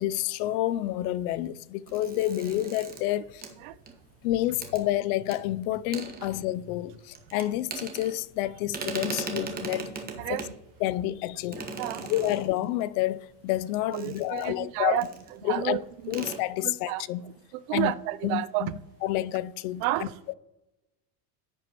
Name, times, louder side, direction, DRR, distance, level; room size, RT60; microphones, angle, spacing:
voice 1, 0.0-3.4 4.2-10.0 10.3-10.4 10.8-11.6 12.1-15.0 15.4-15.8 16.1-17.2 17.7-17.9 18.2-18.7 19.0-19.8 20.3-20.4, left 14 dB, 70° left, 0.5 m, -29 dB
sound 1, 1.9-4.2 4.6-4.8 5.3-5.4 5.7-6.7 7.1-8.4 8.7-10.6 11.5-12.8 13.9-14.7 15.0-15.3 15.6-15.7 16.0-16.4, right 4 dB, 20° right, 1.2 m, -38 dB
voice 2, 11.8-12.1 13.9-15.0 15.4-16.2 16.6-18.7 19.8-20.1, right 16 dB, 65° right, 0.6 m, -31 dB
10.5 x 7.4 x 2.9 m
supercardioid pair, 140°, 45 cm